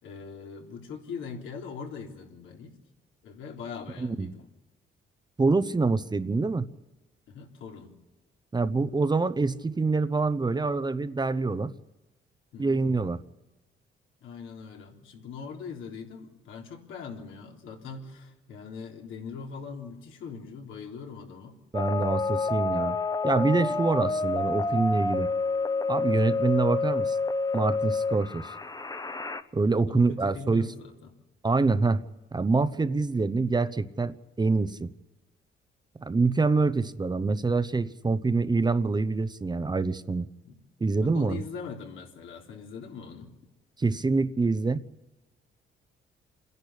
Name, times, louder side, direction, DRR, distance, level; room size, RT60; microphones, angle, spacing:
voice 1, 0.0-2.7 3.2-4.5 7.3-7.9 12.5-12.8 14.2-21.6 23.7-23.8 29.8-31.1 40.4-40.5 41.0-43.3, left 5 dB, 80° left, 1 dB, 3.6 m, -41 dB
voice 2, 4.0-4.3 5.4-6.7 8.5-11.7 12.6-13.2 21.7-23.0 23.2-25.3 25.9-27.2 27.5-28.5 29.5-30.7 31.4-32.0 32.3-34.9 36.0-40.3 40.8-41.4 43.8-44.8, right 3 dB, 20° right, 14 dB, 0.9 m, -25 dB
sound 1, 21.7-29.4, left 3 dB, 20° left, 1.0 m, -28 dB
27.5 x 11.0 x 10.0 m, 1.1 s
cardioid pair, 90°, 20 cm